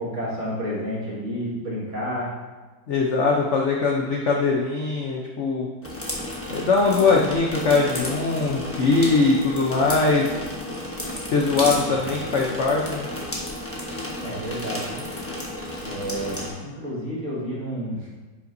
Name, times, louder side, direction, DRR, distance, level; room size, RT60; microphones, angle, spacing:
voice 1, 0.0-2.3 11.8-12.0 14.2-15.0 15.8-18.1, equal, 40° right, -7 dB, 2.1 m, -30 dB
voice 2, 2.9-5.7 6.5-10.3 11.3-13.1, left 3 dB, 65° left, -1 dB, 0.7 m, -21 dB
sound 1, 5.8-16.5, left 1 dB, 10° left, 0.6 m, -32 dB
9.5 x 5.4 x 2.7 m, 1.3 s
omnidirectional pair, 2.0 m